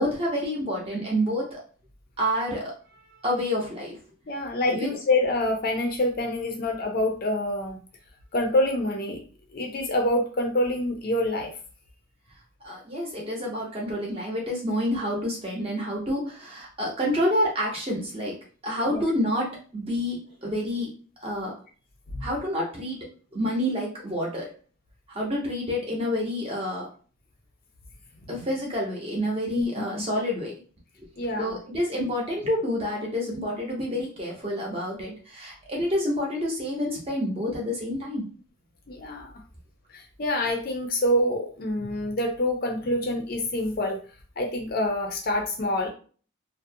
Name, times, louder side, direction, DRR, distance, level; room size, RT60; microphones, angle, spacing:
voice 1, 0.0-1.6 2.2-2.7 3.2-4.0 4.7-4.9 12.6-18.4 18.6-20.9 21.2-21.5 22.2-23.0 23.3-24.5 25.1-26.9 28.3-30.5 31.0-31.1 31.4-38.2, equal, 30° right, -2 dB, 0.7 m, -28 dB
voice 2, 4.3-7.8 8.3-9.2 9.5-11.5 18.8-19.0 22.1-22.3 28.4-28.5 29.5-30.1 31.2-31.6 38.9-39.4 39.9-44.0 44.4-45.9, left 1 dB, 45° left, 2 dB, 0.5 m, -26 dB
2.4 x 2.1 x 2.6 m, 0.40 s
head